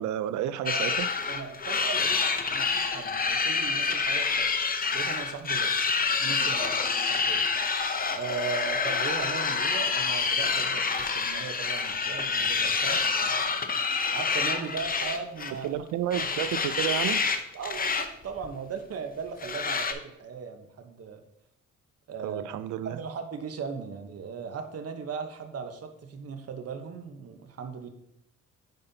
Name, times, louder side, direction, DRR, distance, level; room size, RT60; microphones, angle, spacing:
voice 1, 0.0-1.1 15.6-17.2 22.2-23.0, right 11 dB, 70° right, 14 dB, 0.5 m, -31 dB
voice 2, 0.5-1.0 1.3-2.2 2.5-4.5 4.9-5.8 6.2-6.8 7.0-7.5 8.1-13.0 14.1-15.9 17.5-21.2 22.1-27.9, right 6 dB, 55° right, 6 dB, 1.1 m, -38 dB
sound 1, 0.7-15.7 16.1-17.4 17.6-18.1 18.4-18.5 19.4-19.9, left 5 dB, 30° left, 0.7 m, -27 dB
9.2 x 5.5 x 2.8 m, 0.79 s
cardioid pair, 90°, 30 cm